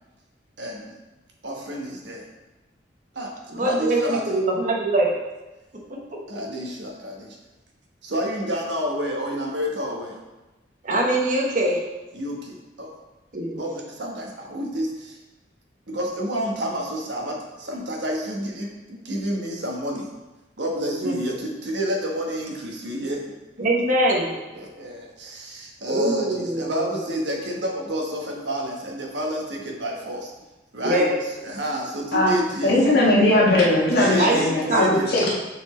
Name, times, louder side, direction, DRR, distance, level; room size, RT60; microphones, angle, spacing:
voice 1, 0.6-0.9 1.4-2.3 3.1-3.3 3.6-4.4 6.3-7.4 8.0-10.2 12.1-12.9 13.5-15.2 15.9-20.1 20.6-23.2 23.6-23.7 24.3-30.3 30.7-31.1 31.4-32.7 34.0-35.1, equal, 75° right, 0 dB, 1.2 m, -29 dB
voice 2, 3.5-5.1 5.9-6.2 10.8-11.8 13.3-13.6 21.0-21.1 23.6-24.3 25.9-26.9 30.8-31.1 34.2-34.9, right 1 dB, 45° right, -1 dB, 1.2 m, -23 dB
voice 3, 32.6-35.3, left 1 dB, 60° left, -4 dB, 1.6 m, -19 dB
6.8 x 4.3 x 3.2 m, 1.1 s
head